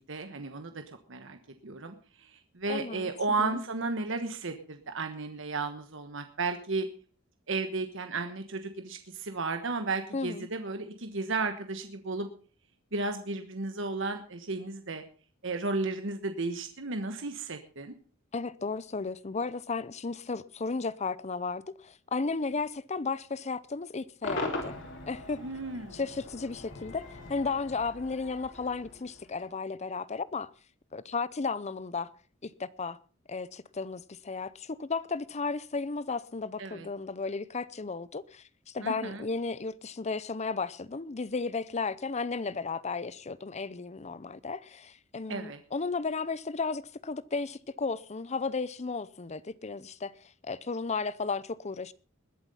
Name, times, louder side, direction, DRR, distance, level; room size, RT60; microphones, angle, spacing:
voice 1, 0.0-1.4 1.6-1.9 2.2-6.9 7.5-12.3 12.9-15.0 15.4-17.9 25.4-26.0 36.6-36.9 38.8-39.3 45.3-45.6, right 3 dB, 65° right, 1.3 m, -34 dB
voice 2, 2.7-3.1 3.4-3.6 10.1-10.5 18.3-24.8 25.1-25.4 25.9-30.5 30.9-32.1 32.4-33.0 33.3-50.1 50.4-51.9, left 4 dB, 35° left, 0.6 m, -34 dB
Cheering / Crowd / Fireworks, 24.2-29.5, left 2 dB, 65° left, 3.6 m, -40 dB
21.0 x 7.7 x 5.5 m
head